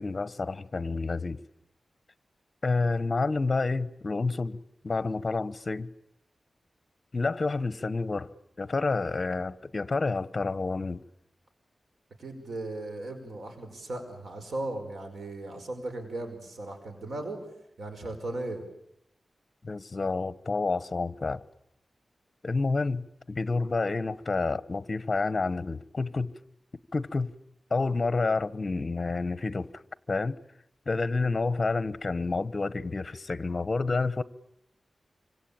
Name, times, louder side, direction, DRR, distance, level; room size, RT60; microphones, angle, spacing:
voice 1, 0.0-1.4 2.6-5.9 7.1-8.3 8.6-11.0 19.6-21.4 22.4-26.3 26.9-27.3 27.7-29.8 30.1-30.4 30.9-34.2, left 3 dB, 40° left, 1.1 m, -29 dB
voice 2, 12.2-17.5 17.8-18.6, right 2 dB, 75° right, 5.2 m, -37 dB
26.5 x 25.5 x 8.9 m
wide cardioid pair, 110°, 0 cm